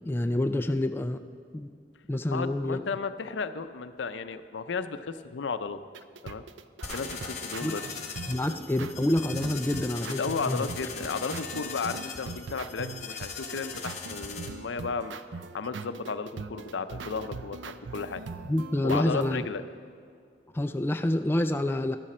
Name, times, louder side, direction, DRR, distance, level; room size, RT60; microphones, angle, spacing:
voice 1, 0.1-1.2 1.5-1.7 2.1-2.8 7.6-7.7 8.3-10.2 10.5-10.7 18.5-19.4 20.5-22.0, left 1 dB, 10° left, 7 dB, 0.3 m, -27 dB
voice 2, 2.3-5.8 6.2-6.4 6.9-7.8 10.2-15.2 15.5-18.2 18.8-19.6, left 5 dB, 90° left, 11 dB, 0.5 m, -34 dB
sound 1, 5.9-19.5, right 4 dB, 90° right, 0.5 m, -41 dB
sound 2, 6.8-14.5, left 5 dB, 40° left, 1.1 m, -40 dB
12.5 x 12.0 x 4.3 m, 2.3 s
head